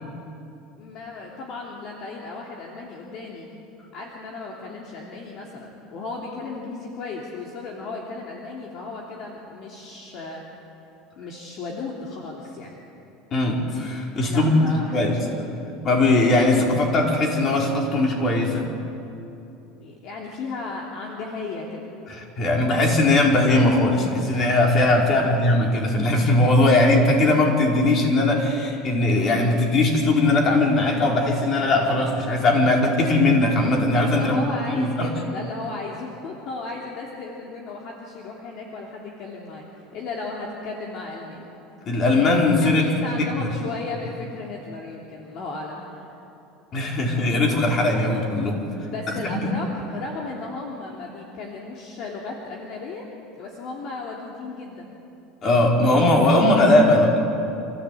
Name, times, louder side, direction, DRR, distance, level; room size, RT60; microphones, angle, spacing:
voice 1, 0.8-3.5 3.9-10.4 11.2-12.8 14.3-15.2 15.6-15.8 19.7-21.8 25.1-25.3 34.1-39.6 39.9-41.5 42.6-46.1 48.8-53.1 53.3-54.9 56.9-57.0, left 3 dB, 55° left, -2 dB, 3.0 m, -35 dB
voice 2, 13.3-14.5 14.9-15.1 15.8-18.7 22.1-34.4 34.7-35.1 41.9-42.9 43.4-43.5 46.7-48.6 49.2-49.5 55.4-57.2, left 2 dB, 40° left, 0 dB, 4.6 m, -19 dB
27.0 x 15.0 x 8.5 m, 2.8 s
supercardioid pair, 125°, 0 cm